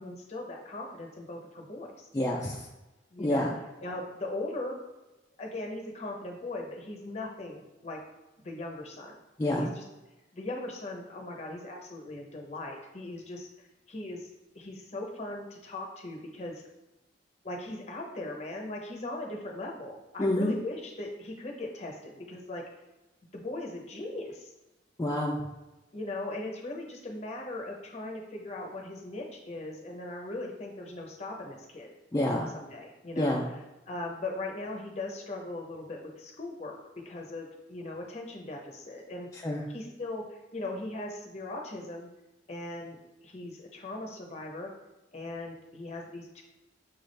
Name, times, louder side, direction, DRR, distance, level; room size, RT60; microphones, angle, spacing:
voice 1, 0.0-2.1 3.1-3.5 3.8-4.8 5.4-8.0 8.4-9.1 9.5-9.8 10.3-13.5 13.9-14.3 14.5-16.6 17.4-22.7 23.3-24.5 25.9-31.9 32.5-33.4 33.9-39.3 39.7-42.1 42.5-43.0 43.2-44.7 45.1-46.4, left 2 dB, 35° left, 1 dB, 0.7 m, -39 dB
voice 2, 2.1-2.6 3.2-3.5 9.4-9.7 20.2-20.5 25.0-25.4 32.1-32.5 33.2-33.4 39.4-39.6, left 1 dB, 20° left, -3 dB, 0.3 m, -27 dB
6.0 x 2.4 x 3.2 m, 1.0 s
head